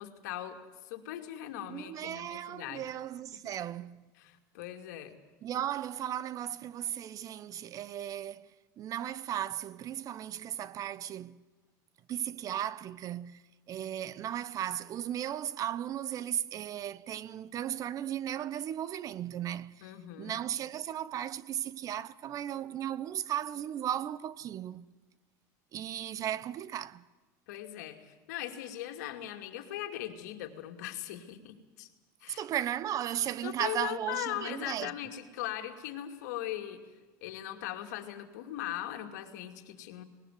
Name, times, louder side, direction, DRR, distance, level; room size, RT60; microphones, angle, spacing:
voice 1, 0.0-2.9 3.4-3.5 4.2-5.1 19.8-20.4 27.5-31.9 32.2-32.4 33.4-36.8 37.2-40.0, left 12 dB, 85° left, 2.6 m, -40 dB
voice 2, 1.7-4.0 5.4-8.5 8.8-11.4 12.1-13.4 13.7-19.9 20.2-24.9 25.7-27.0 32.3-34.9, right 11 dB, 40° right, 0.8 m, -36 dB
20.5 x 19.0 x 9.4 m
supercardioid pair, 125°, 9 cm